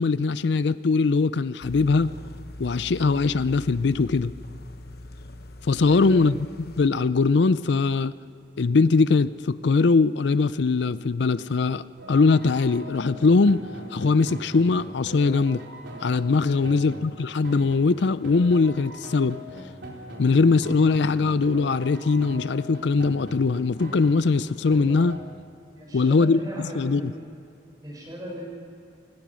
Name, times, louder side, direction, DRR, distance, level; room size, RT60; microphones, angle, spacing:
voice 1, 0.0-2.1 2.6-4.3 5.6-6.3 6.8-8.1 8.6-13.6 13.9-15.6 16.0-19.4 20.2-25.2 25.9-27.1, left 4 dB, 70° left, 15 dB, 0.5 m, -21 dB
sound 1, 1.6-6.9, left 1 dB, 55° left, 1.0 m, -42 dB
voice 2, 5.8-6.3 16.4-16.8 25.7-27.2 27.8-28.4, right 1 dB, 20° right, -2 dB, 6.7 m, -38 dB
sound 2, 12.0-25.2, equal, 75° right, 4.1 m, -41 dB
29.5 x 17.5 x 6.3 m, 2.4 s
head